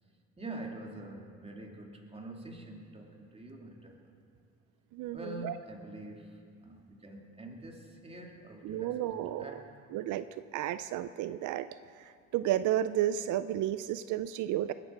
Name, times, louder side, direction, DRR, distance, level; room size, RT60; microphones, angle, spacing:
voice 1, 0.4-4.1 5.1-6.3 6.6-9.6, right 1 dB, 20° right, 0 dB, 2.5 m, -45 dB
voice 2, 4.9-5.5 8.6-9.6 9.9-10.3 10.5-11.7 12.0-14.7, right 12 dB, 85° right, 13 dB, 0.5 m, -32 dB
20.0 x 9.2 x 6.6 m, 2.4 s
cardioid pair, 90°, 30 cm